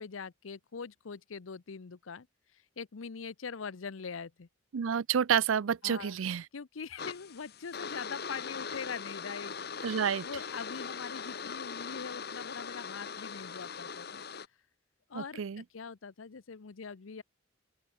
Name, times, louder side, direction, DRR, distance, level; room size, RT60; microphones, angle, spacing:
voice 1, 0.0-2.3 2.8-4.5 5.8-6.2 6.5-9.6 10.2-14.2 15.1-17.2, left 5 dB, 90° left, 0.7 m, -42 dB
voice 2, 4.7-6.4 9.8-10.3 15.1-15.6, right 8 dB, 90° right, 0.5 m, -29 dB
sound 1, 7.0-14.5, left 6 dB, 55° left, 1.4 m, -41 dB
open air
head